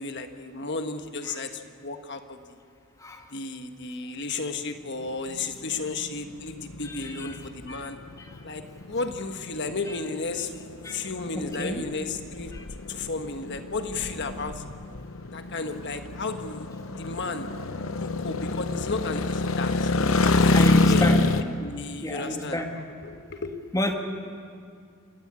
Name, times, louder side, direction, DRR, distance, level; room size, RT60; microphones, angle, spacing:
voice 1, 0.0-2.6 3.3-8.0 8.4-10.5 10.9-12.5 12.9-14.6 15.3-17.5 18.0-19.9 20.4-21.2 21.6-23.5, left 3 dB, 55° left, 6 dB, 1.4 m, -33 dB
sound 1, 5.3-21.4, left 2 dB, 70° left, 0.9 m, -27 dB
voice 2, 11.3-11.8 20.5-21.2 22.0-22.7 23.7-23.9, left 1 dB, 15° left, 3 dB, 1.8 m, -29 dB
28.0 x 12.5 x 8.8 m, 2.2 s
head